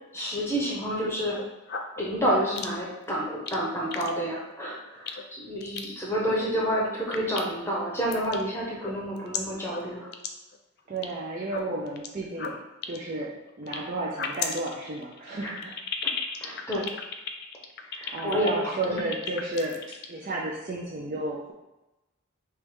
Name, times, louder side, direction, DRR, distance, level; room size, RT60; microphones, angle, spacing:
voice 1, 0.1-1.4 2.0-10.1 15.4-15.5 16.4-17.0 17.8-18.5 18.9-19.0, equal, 10° left, -4 dB, 0.8 m, -29 dB
sound 1, 1.2-2.0 2.6-2.9 3.3-3.6 3.9-4.1 4.4-4.5 5.1-5.2 5.6-5.9 6.5-6.8 7.1-7.7 8.1-8.4 8.7-9.4 9.7-9.8 10.1-10.3 10.5-11.1 11.4-12.1 12.4-13.8 14.1-20.1, left 7 dB, 50° left, 0.4 m, -34 dB
voice 2, 10.9-12.6 12.9-15.8 18.1-21.5, right 2 dB, 40° right, -3 dB, 0.5 m, -32 dB
3.4 x 3.1 x 4.7 m, 1.0 s
head